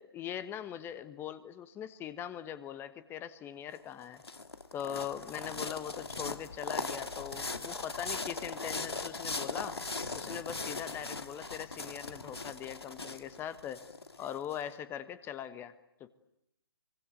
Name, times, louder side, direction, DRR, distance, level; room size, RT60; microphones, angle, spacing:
voice 1, 0.0-4.2 4.7-9.8 10.1-13.8 14.2-15.7 16.0-16.1, left 10 dB, 15° left, 14 dB, 1.2 m, -41 dB
sound 1, 3.7-14.6, left 3 dB, 85° left, 2.4 m, -39 dB
25.0 x 23.5 x 9.2 m, 0.78 s
figure-of-eight pair, 135°, 13 cm